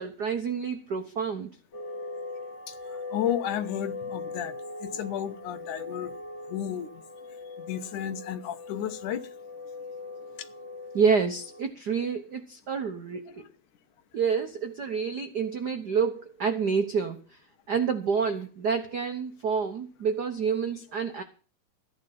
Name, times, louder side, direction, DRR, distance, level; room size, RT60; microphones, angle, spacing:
voice 1, 0.0-1.5 10.9-13.5 14.1-17.4 17.7-21.2, right 6 dB, 85° right, 0.8 m, -28 dB
sound 1, 1.7-11.6, left 3 dB, 40° left, 1.1 m, -40 dB
voice 2, 3.1-4.6 4.8-6.1 6.5-7.0 7.6-9.2 13.1-13.2, left 10 dB, 85° left, 2.7 m, -32 dB
14.5 x 10.0 x 5.9 m
omnidirectional pair, 3.5 m